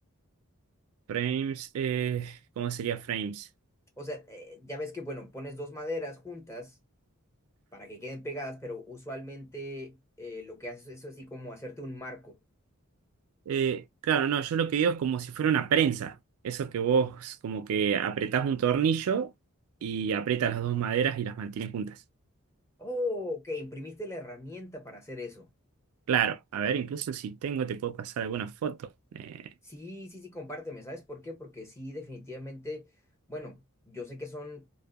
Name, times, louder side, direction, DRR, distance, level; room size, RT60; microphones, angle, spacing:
voice 1, 1.1-3.5 13.5-16.2 16.4-19.3 19.8-22.0 26.1-28.9 29.1-29.5, right 7 dB, 80° right, 0.3 m, -29 dB
voice 2, 4.0-6.7 7.7-12.4 22.8-25.5 29.6-32.9 33.3-34.7, left 1 dB, 15° left, 0.8 m, -39 dB
2.6 x 2.1 x 2.2 m
head